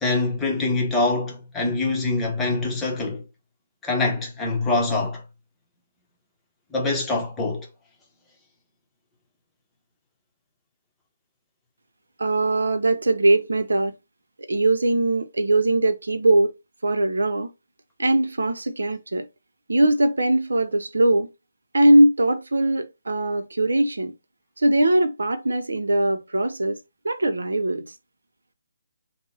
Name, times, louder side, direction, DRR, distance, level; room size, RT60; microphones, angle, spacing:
voice 1, 0.0-3.2 3.8-5.2 6.7-7.7, left 3 dB, 10° left, 0.8 m, -24 dB
voice 2, 12.2-14.0 14.5-16.5 16.8-17.5 18.0-19.3 19.7-21.3 21.7-24.1 24.6-26.8 27.0-27.9, right 1 dB, 85° right, 0.6 m, -20 dB
3.8 x 2.1 x 3.7 m
hypercardioid pair, 150°, 0 cm